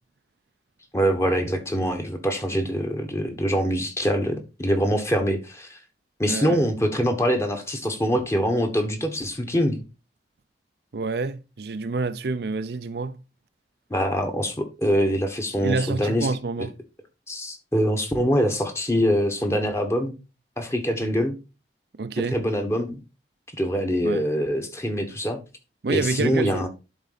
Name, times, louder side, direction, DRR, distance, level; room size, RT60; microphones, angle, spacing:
voice 1, 0.9-5.8 6.2-9.8 13.9-16.3 17.3-20.2 20.6-21.3 22.3-23.0 23.6-25.4 25.9-26.7, equal, 15° left, 1.3 m, -24 dB
voice 2, 6.3-6.6 10.9-13.2 15.6-16.7 22.0-22.4 24.0-24.3 25.8-26.7, right 3 dB, 65° right, 0.5 m, -28 dB
11.5 x 4.0 x 4.0 m
head